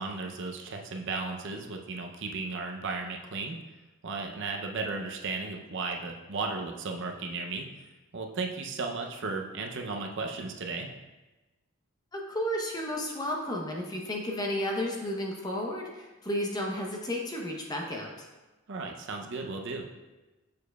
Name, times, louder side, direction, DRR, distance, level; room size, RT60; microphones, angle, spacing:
voice 1, 0.0-3.6 4.0-7.7 8.1-10.9 18.7-19.9, right 3 dB, 55° right, 3 dB, 0.6 m, -35 dB
voice 2, 12.1-18.3, equal, 15° left, -1 dB, 0.7 m, -32 dB
6.9 x 6.5 x 2.3 m, 1.1 s
head